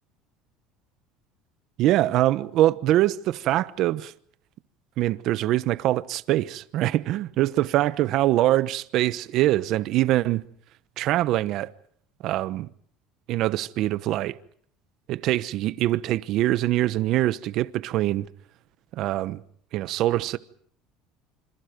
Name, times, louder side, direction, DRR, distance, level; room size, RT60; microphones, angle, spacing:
voice 1, 1.8-4.1 5.0-10.4 11.0-11.7 12.2-12.7 13.3-14.4 15.1-18.3 18.9-19.4 19.7-20.4, right 15 dB, 55° right, 1.0 m, -23 dB
27.0 x 26.0 x 5.2 m
cardioid pair, 145°, 0 cm